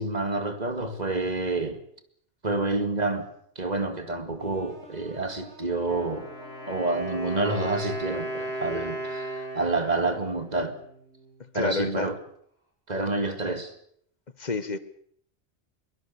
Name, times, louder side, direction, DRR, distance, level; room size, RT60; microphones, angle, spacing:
voice 1, 0.0-1.8 2.4-3.3 3.6-6.3 6.7-10.8 11.5-12.2 12.9-13.7, right 2 dB, 40° right, 2.4 m, -28 dB
sound 1, 4.4-9.2, right 2 dB, 70° right, 7.0 m, -51 dB
Wind instrument woodwind instrument, 5.7-11.5, right 1 dB, 65° left, 6.3 m, -36 dB
voice 2, 11.5-12.1 14.4-14.8, left 4 dB, 40° left, 1.5 m, -29 dB
22.5 x 20.0 x 7.0 m
omnidirectional pair, 1.1 m